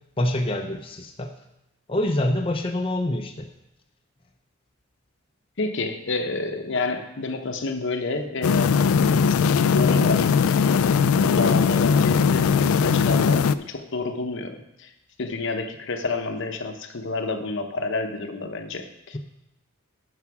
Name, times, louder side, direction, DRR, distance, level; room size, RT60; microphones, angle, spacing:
voice 1, 0.2-1.3 1.9-3.5, left 1 dB, 25° left, 2 dB, 0.6 m, -25 dB
voice 2, 5.6-10.8 11.2-14.9 15.2-19.2, left 3 dB, 60° left, 6 dB, 0.9 m, -29 dB
sound 1, 8.4-13.5, left 6 dB, 85° left, 0.4 m, -19 dB
9.6 x 5.9 x 5.9 m, 0.86 s
head